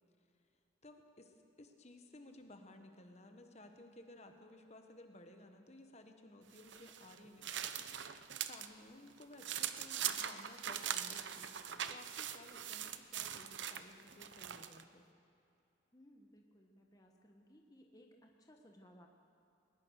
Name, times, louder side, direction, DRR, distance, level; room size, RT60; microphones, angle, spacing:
voice 1, 0.8-7.6 7.9-15.1, left 1 dB, 35° left, 5 dB, 1.4 m, -57 dB
sound 1, 6.5-8.7 9.1-14.8, right 9 dB, 70° right, 0.8 m, -42 dB
voice 2, 15.9-19.1, equal, 20° left, 2 dB, 1.3 m, -62 dB
20.5 x 20.0 x 6.5 m, 2.6 s
head